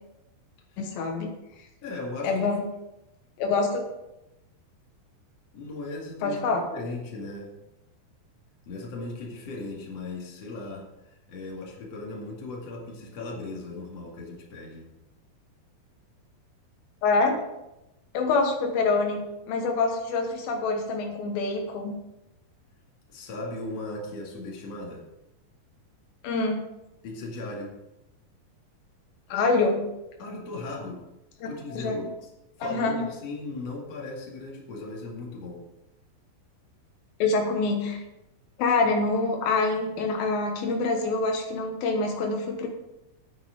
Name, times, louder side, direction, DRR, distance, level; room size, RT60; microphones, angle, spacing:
voice 1, 0.8-1.3 2.2-2.7 3.4-3.9 6.2-6.7 17.0-17.4 18.1-19.2 19.5-21.9 26.2-26.7 29.3-29.9 31.8-32.1 32.6-33.0 37.2-38.0 38.6-42.7, left 3 dB, 85° left, 3 dB, 3.0 m, -25 dB
voice 2, 1.8-2.6 5.5-7.5 8.7-14.9 23.1-25.1 27.0-27.8 30.2-31.0 31.5-32.3 32.6-35.6, left 2 dB, 45° left, -1 dB, 3.0 m, -37 dB
9.5 x 9.3 x 5.1 m, 0.92 s
omnidirectional pair, 4.2 m